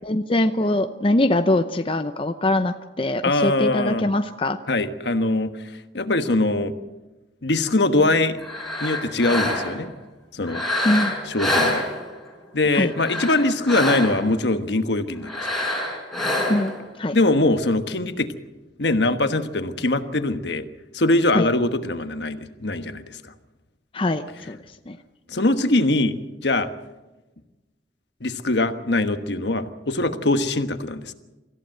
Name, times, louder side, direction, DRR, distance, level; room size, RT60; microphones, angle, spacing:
voice 1, 0.0-4.6 10.8-11.1 12.7-12.9 16.5-16.7 17.0-17.2 21.3-21.5 23.9-24.6 24.9-25.0, left 1 dB, 30° left, 8 dB, 0.7 m, -22 dB
voice 2, 3.2-4.0 4.7-6.7 7.4-8.4 8.8-9.9 10.3-10.6 11.3-11.9 12.5-15.5 17.1-18.3 18.8-20.7 20.9-23.2 25.3-26.1 26.4-26.7 28.2-31.1, left 2 dB, 65° left, 9 dB, 1.3 m, -22 dB
sound 1, 8.4-9.9 10.4-12.3 12.9-14.4 15.2-16.8, left 1 dB, ahead, 4.9 m, -26 dB
25.0 x 15.0 x 7.8 m, 1.1 s
head